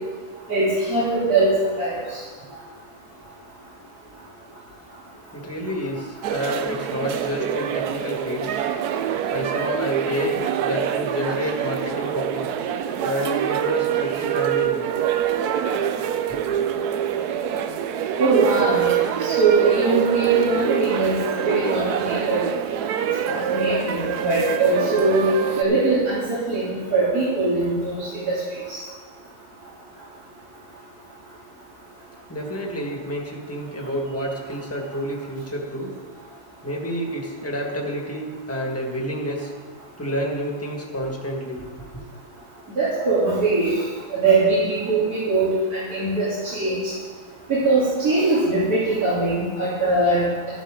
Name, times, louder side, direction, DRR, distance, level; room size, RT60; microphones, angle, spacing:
voice 1, 0.5-2.2 18.2-18.8 19.2-21.2 21.4-22.4 23.3-25.3 25.6-28.4 28.7-28.8 42.8-43.7 44.1-46.9 47.5-50.3, right 3 dB, 75° right, -12 dB, 3.7 m, -21 dB
voice 2, 5.3-8.6 9.3-12.5 13.0-14.9 16.3-16.4 32.3-35.9 36.6-39.5 40.0-41.7 41.9-42.0, equal, 10° left, -1 dB, 1.7 m, -29 dB
sound 1, 6.2-25.6, right 9 dB, 90° right, 1.2 m, -25 dB
12.0 x 12.0 x 3.8 m, 1.5 s
omnidirectional pair, 1.6 m